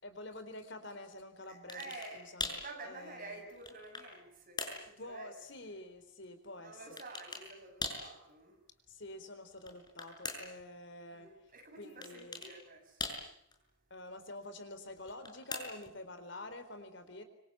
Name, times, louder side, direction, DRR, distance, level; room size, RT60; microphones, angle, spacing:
voice 1, 0.0-3.4 5.0-7.0 8.9-11.3 11.8-12.4 13.9-17.2, left 2 dB, 65° left, 4.1 m, -48 dB
voice 2, 1.5-5.3 5.6-5.7 6.6-8.6 11.1-13.3, right 2 dB, 45° right, 7.6 m, -50 dB
sound 1, 1.7-2.1 2.4-2.7 3.3-4.1 4.6-4.9 7.0-7.5 7.8-8.1 9.5-10.6 12.0-12.5 13.0-13.5 15.0-15.9, left 3 dB, 20° left, 6.4 m, -41 dB
25.5 x 25.5 x 8.8 m
head